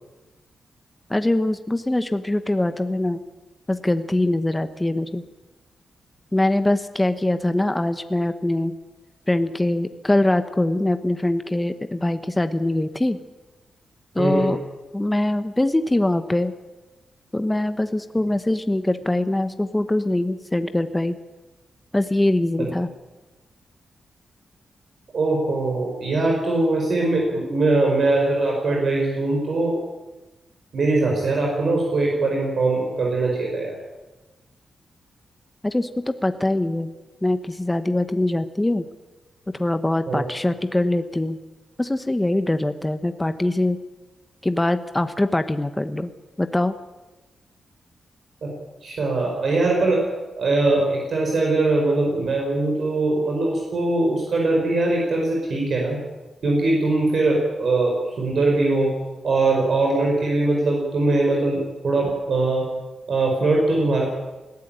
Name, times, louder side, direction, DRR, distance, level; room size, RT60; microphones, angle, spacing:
voice 1, 1.1-3.2 3.7-5.2 6.3-8.8 9.3-13.2 14.1-14.6 14.9-16.5 17.3-21.2 21.9-22.9 35.6-36.9 37.2-38.9 39.5-41.4 41.8-43.8 44.4-46.1 46.4-46.7, left 1 dB, 15° left, 9 dB, 1.0 m, -23 dB
voice 2, 14.2-14.5 22.6-22.7 25.1-29.8 30.7-33.8 40.1-40.3 48.4-48.5 48.8-50.0 50.4-56.0 56.4-59.0 59.2-62.7 63.1-64.0, right 2 dB, 65° right, -1 dB, 4.9 m, -21 dB
20.5 x 14.5 x 8.9 m, 1.2 s
cardioid pair, 90°, 0 cm